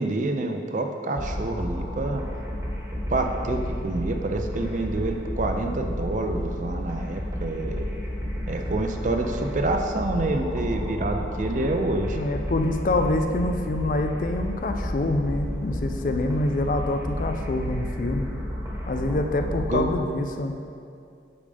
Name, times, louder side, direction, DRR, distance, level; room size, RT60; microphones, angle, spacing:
voice 1, 0.0-2.2 3.1-7.9 8.5-12.2 19.7-19.8, right 2 dB, 40° right, 5 dB, 0.5 m, -27 dB
sound 1, 1.2-20.0, equal, 15° right, 1.1 m, -31 dB
voice 2, 12.1-18.3 18.9-20.5, left 2 dB, 45° left, 6 dB, 0.4 m, -26 dB
8.5 x 5.2 x 3.4 m, 2.4 s
head